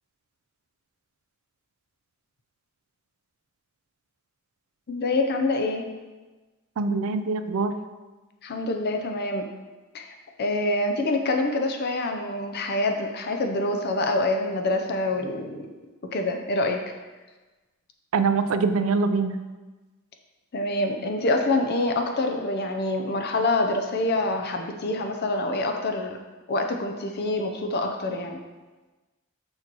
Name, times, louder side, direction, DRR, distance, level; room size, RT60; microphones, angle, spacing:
voice 1, 4.9-5.9 8.4-9.5 9.9-15.7 16.1-16.8 20.5-26.2 26.5-28.4, left 2 dB, 50° left, 4 dB, 0.6 m, -26 dB
voice 2, 6.8-7.8 18.1-19.4, right 4 dB, 70° right, 10 dB, 0.4 m, -24 dB
6.4 x 6.0 x 3.0 m, 1.2 s
head